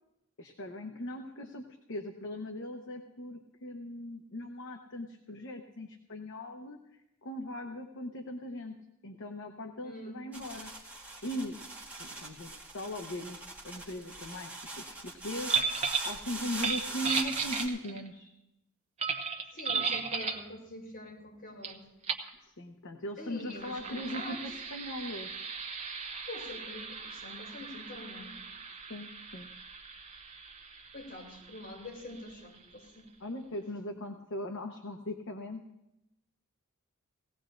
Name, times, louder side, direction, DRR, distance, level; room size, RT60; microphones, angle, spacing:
voice 1, 0.4-8.8 9.0-10.9 11.2-11.6 12.0-13.4 13.6-18.3 22.6-25.5 28.9-29.5 33.2-35.7, left 1 dB, 60° left, 5 dB, 0.9 m, -39 dB
voice 2, 9.8-10.2 19.5-21.9 23.2-24.6 26.3-28.4 30.9-33.1, left 1 dB, 45° left, -2 dB, 4.2 m, -45 dB
sound 1, 10.3-17.7, right 2 dB, 5° right, 2.0 m, -42 dB
sound 2, 15.5-16.1 16.5-18.1 19.0-20.5 21.6-21.7 22.0-22.3 23.4-32.6, right 5 dB, 30° right, 1.0 m, -36 dB
19.0 x 17.0 x 2.6 m, 0.88 s
head